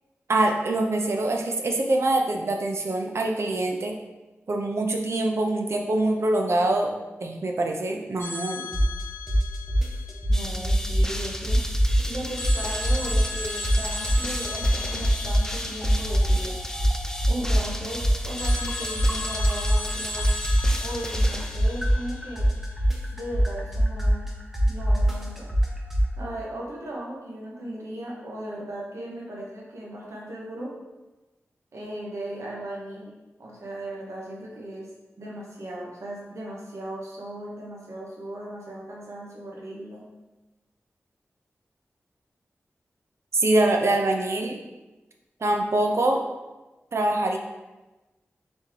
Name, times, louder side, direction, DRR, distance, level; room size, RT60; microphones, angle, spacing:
voice 1, 0.3-3.9 4.5-6.9 7.2-8.6 43.3-44.6 45.4-46.2 46.9-47.4, right 2 dB, 65° right, 2 dB, 0.6 m, -24 dB
sound 1, 8.2-11.1 12.4-17.3 18.4-22.6, left 3 dB, 55° left, 0.7 m, -37 dB
sound 2, 8.7-9.0 9.3-11.2 11.5-13.4 13.6-15.6 15.8-19.9 20.2-26.1, equal, 5° right, 0.9 m, -22 dB
sound 3, 10.3-22.2, equal, 10° left, 0.4 m, -35 dB
voice 2, 10.3-11.6 12.0-16.6 17.3-20.3 20.8-22.5 23.1-24.3 24.7-25.5 26.2-30.7 31.7-34.9 35.2-40.0, right 1 dB, 80° right, -4 dB, 1.1 m, -37 dB
4.1 x 3.2 x 3.6 m, 1.1 s
cardioid pair, 50°, 5 cm